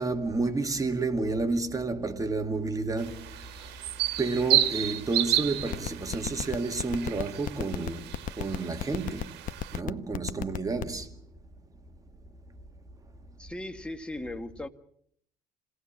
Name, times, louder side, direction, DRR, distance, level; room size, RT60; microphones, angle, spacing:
voice 1, 0.0-3.5 4.2-9.3 9.7-11.1, right 3 dB, 20° right, 2.2 m, -30 dB
sound 1, 3.0-9.8, right 13 dB, 85° right, 1.4 m, -31 dB
sound 2, 5.6-11.0, left 10 dB, 50° left, 0.9 m, -31 dB
voice 2, 13.4-14.7, left 1 dB, 5° left, 1.8 m, -37 dB
27.5 x 18.0 x 7.2 m
cardioid pair, 110°, 17 cm